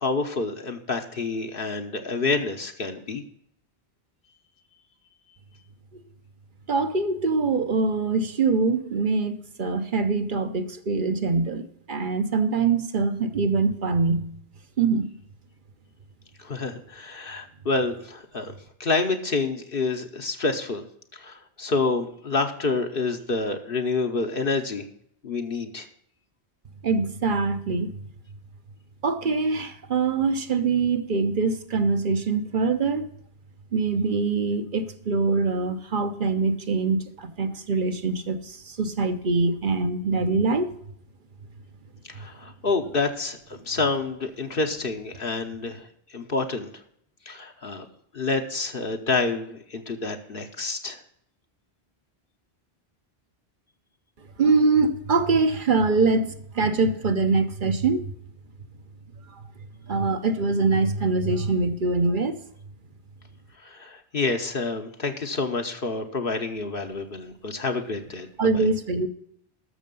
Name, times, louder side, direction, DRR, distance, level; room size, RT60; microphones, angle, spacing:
voice 1, 0.0-3.2 16.4-18.5 18.8-20.8 21.1-24.8 25.2-25.9 42.1-43.4 43.7-45.9 46.1-46.7 47.3-47.9 48.1-51.0 63.6-68.3 68.5-68.7, left 3 dB, 60° left, 1.2 m, -28 dB
voice 2, 6.7-14.3 14.8-15.1 26.8-28.0 29.0-33.1 33.7-40.7 54.4-58.0 59.9-62.4 68.4-69.1, right 4 dB, 50° right, 1.0 m, -24 dB
13.5 x 6.5 x 5.3 m
omnidirectional pair, 1.1 m